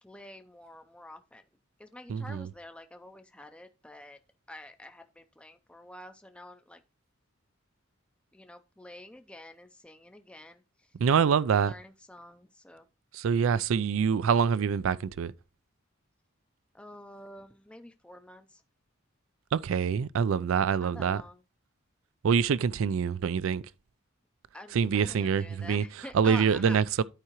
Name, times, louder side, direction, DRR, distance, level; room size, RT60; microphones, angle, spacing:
voice 1, 0.0-1.5 1.8-4.2 4.5-6.8 8.3-10.9 11.5-12.9 16.7-18.6 20.8-21.4 24.5-26.8, left 1 dB, 5° left, 0.4 m, -47 dB
voice 2, 2.1-2.5 11.0-11.7 13.1-15.3 19.5-21.2 22.2-23.6 24.7-25.8 26.1-27.0, right 6 dB, 70° right, 0.4 m, -25 dB
12.5 x 4.8 x 2.9 m
head